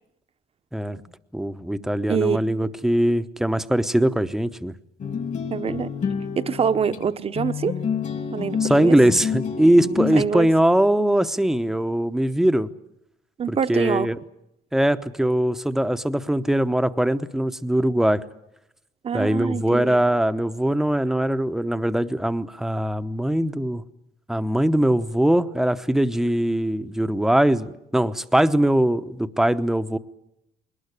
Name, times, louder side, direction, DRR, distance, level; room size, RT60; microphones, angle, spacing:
voice 1, 1.3-4.7 8.6-12.7 13.5-14.2 14.7-18.2 19.1-23.8 24.3-30.0, right 1 dB, ahead, 0.9 m, -21 dB
sound 1, 5.0-10.2, left 6 dB, 45° left, 2.5 m, -28 dB
voice 2, 5.5-5.9 6.4-7.8 8.3-9.0 10.1-10.5 13.4-14.1 19.0-20.0, right 7 dB, 35° right, 1.0 m, -25 dB
21.5 x 19.0 x 9.8 m
cardioid pair, 110°, 17 cm